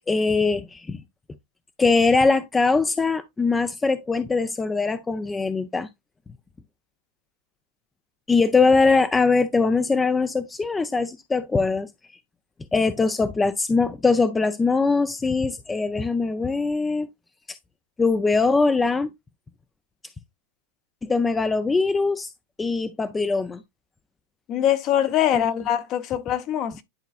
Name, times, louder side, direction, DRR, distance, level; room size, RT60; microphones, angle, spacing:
voice 1, 0.1-1.0 1.8-5.9 8.3-11.9 12.7-17.1 18.0-19.1 21.0-22.3 22.6-23.6 25.3-25.5, left 4 dB, 15° left, 0.4 m, -22 dB
voice 2, 24.5-26.8, left 11 dB, 40° left, 0.9 m, -23 dB
10.5 x 4.0 x 2.4 m
hypercardioid pair, 120°, 0 cm